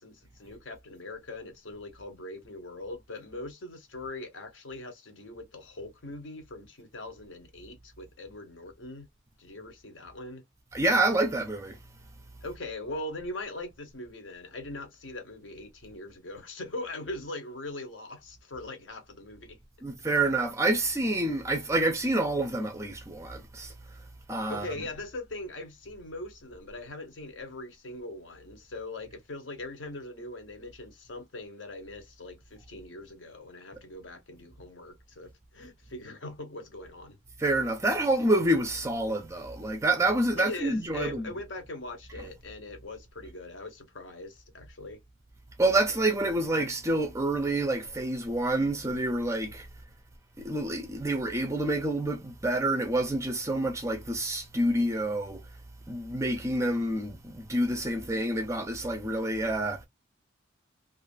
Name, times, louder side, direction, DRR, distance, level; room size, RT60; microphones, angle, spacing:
voice 1, 0.0-9.1 9.4-10.4 12.4-19.6 20.2-20.3 24.5-37.2 40.4-45.0, left 2 dB, 60° left, 0.8 m, -41 dB
voice 2, 10.7-11.8 19.8-24.0 24.3-24.7 37.4-41.3 45.6-49.7 50.4-55.5 55.9-59.8, right 2 dB, 15° right, 0.4 m, -28 dB
2.4 x 2.4 x 2.4 m
head